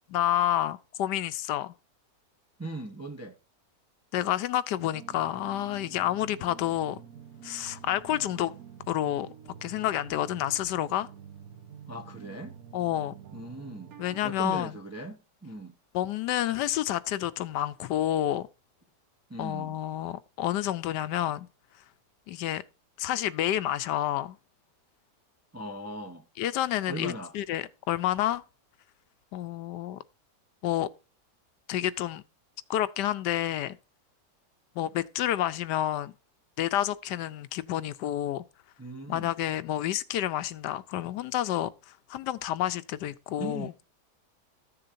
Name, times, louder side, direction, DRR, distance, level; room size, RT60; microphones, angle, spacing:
voice 1, 0.1-1.7 4.1-7.0 7.4-8.5 8.9-9.3 9.6-11.1 12.7-13.1 14.0-14.7 15.9-18.5 19.4-21.5 22.3-22.6 23.0-24.4 26.4-28.4 29.3-30.0 30.6-30.9 31.7-32.2 32.7-33.8 34.8-36.1 36.6-38.4 39.1-43.7, left 12 dB, 80° left, 1.2 m, -29 dB
voice 2, 2.6-3.4 11.9-12.6 13.3-14.0 14.2-15.7 19.3-19.8 25.5-26.2 26.9-27.3 38.8-39.3 43.4-43.7, right 2 dB, 15° right, 0.5 m, -39 dB
sound 1, 4.8-14.6, right 8 dB, 65° right, 1.2 m, -48 dB
14.0 x 6.8 x 2.6 m
omnidirectional pair, 1.8 m